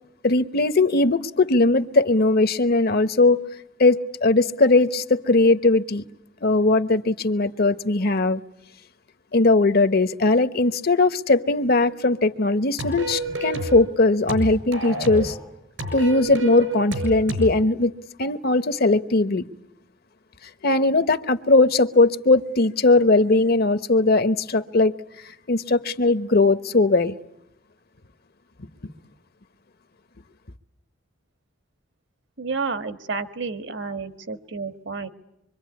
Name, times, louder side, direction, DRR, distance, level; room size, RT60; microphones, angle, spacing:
voice 1, 0.2-3.4 3.8-6.0 6.4-8.4 9.3-15.4 15.9-17.9 18.2-19.4 20.6-24.9 25.5-27.2, left 2 dB, 55° left, 1.1 m, -19 dB
sound 1, 12.8-13.8 14.3-15.4 15.8-17.5, right 2 dB, 85° right, 7.3 m, -29 dB
voice 2, 32.4-35.1, right 4 dB, 65° right, 1.5 m, -30 dB
25.5 x 24.5 x 9.6 m
head